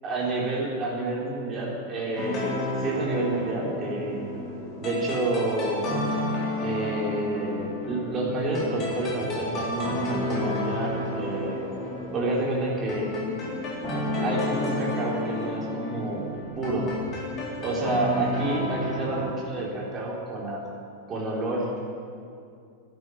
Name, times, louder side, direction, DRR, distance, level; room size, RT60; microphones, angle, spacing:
voice 1, 0.0-4.4 4.8-5.8 6.6-11.7 12.1-13.1 14.2-16.2 16.5-16.9 17.6-20.6 21.1-21.7, right 2 dB, 25° right, -3 dB, 3.6 m, -29 dB
sound 1, 2.2-19.3, left 1 dB, 30° left, 4.0 m, -31 dB
11.5 x 9.1 x 9.5 m, 2.4 s
figure-of-eight pair, 90°, 0 cm